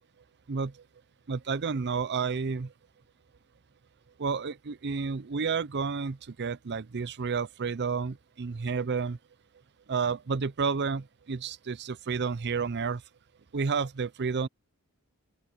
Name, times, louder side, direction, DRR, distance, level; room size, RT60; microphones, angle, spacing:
voice 1, 0.5-0.8 1.3-2.7 4.2-9.2 9.9-13.0 13.5-14.5, right 5 dB, 50° right, 0.6 m, -31 dB
open air
head